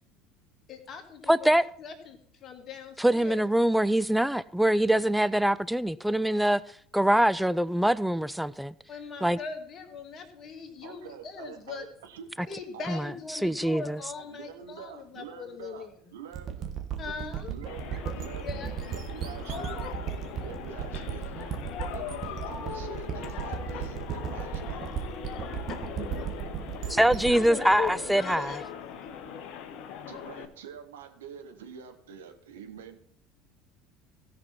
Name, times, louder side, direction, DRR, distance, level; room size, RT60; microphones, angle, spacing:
voice 1, 0.7-1.5 1.8-3.4 8.9-11.8 12.5-15.9 17.0-17.5 18.4-18.7 25.7-25.8 26.2-26.3 26.5-26.6 27.3-28.7, left 6 dB, 40° left, 1.8 m, -40 dB
voice 2, 1.3-1.6 3.0-6.6 6.9-8.7 9.2-9.4 12.9-14.0 26.9-28.6, right 1 dB, 5° right, 0.4 m, -24 dB
voice 3, 10.8-12.3 12.7-13.0 14.1-16.7 17.0-18.5 18.8-19.9 20.4-21.6 21.9-25.0 27.6-28.3 30.1-33.0, right 8 dB, 70° right, 1.2 m, -46 dB
sound 1, 16.3-28.9, right 8 dB, 45° right, 1.3 m, -36 dB
sound 2, 17.7-30.5, left 8 dB, 55° left, 0.9 m, -40 dB
16.5 x 5.9 x 4.3 m
figure-of-eight pair, 65°, 0 cm